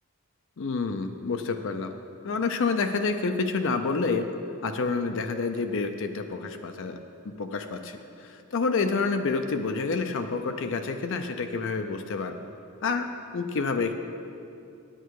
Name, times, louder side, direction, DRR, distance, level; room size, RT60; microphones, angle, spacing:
voice 1, 0.6-1.9 2.2-4.3 4.6-7.0 7.3-12.4 12.8-13.1 13.3-13.9, left 4 dB, 60° left, 6 dB, 0.5 m, -28 dB
9.0 x 8.9 x 4.7 m, 2.6 s
head